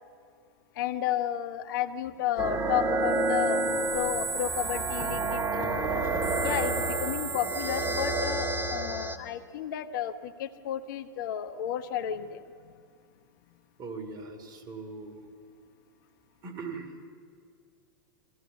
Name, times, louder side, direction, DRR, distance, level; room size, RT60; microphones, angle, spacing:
voice 1, 0.8-6.0 6.4-12.4, left 10 dB, 60° left, 10 dB, 1.1 m, -32 dB
sound 1, 2.0-5.1 5.5-7.5, left 2 dB, 25° left, 3.8 m, -47 dB
sound 2, 2.4-9.2, right 3 dB, 20° right, 1.5 m, -29 dB
voice 2, 13.8-15.2 16.4-16.9, right 4 dB, 35° right, 4 dB, 3.0 m, -40 dB
22.5 x 15.5 x 8.4 m, 2.2 s
hypercardioid pair, 100°, 12 cm